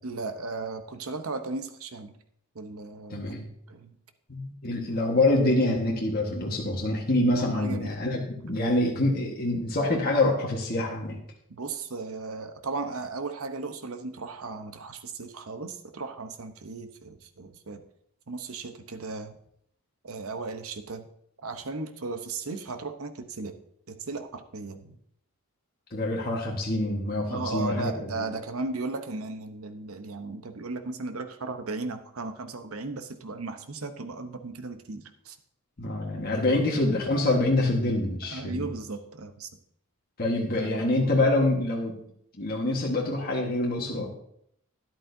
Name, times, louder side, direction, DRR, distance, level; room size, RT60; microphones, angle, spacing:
voice 1, 0.0-2.2 2.5-3.3 3.7-4.0 7.5-8.0 11.5-17.8 18.3-19.3 20.0-21.1 21.4-23.5 23.9-25.0 27.3-35.4 38.2-39.5 40.6-40.9, right 3 dB, 70° right, 8 dB, 0.9 m, -36 dB
voice 2, 3.1-3.5 4.3-11.2 25.9-28.3 35.8-38.7 40.2-41.9 42.4-44.1, left 2 dB, 45° left, -2 dB, 1.5 m, -26 dB
12.5 x 11.0 x 2.7 m, 0.71 s
head